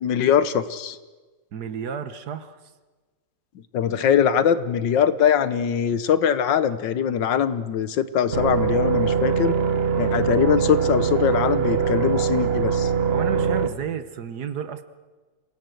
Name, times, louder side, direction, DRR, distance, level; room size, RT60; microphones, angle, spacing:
voice 1, 0.0-1.0 3.7-9.5 10.0-12.9, left 8 dB, 70° left, 14 dB, 1.6 m, -22 dB
voice 2, 1.5-2.6 13.1-14.8, right 7 dB, 60° right, 12 dB, 1.6 m, -31 dB
sound 1, 8.3-13.7, right 6 dB, 35° right, 1.2 m, -22 dB
27.5 x 18.0 x 7.8 m, 1.3 s
omnidirectional pair, 2.0 m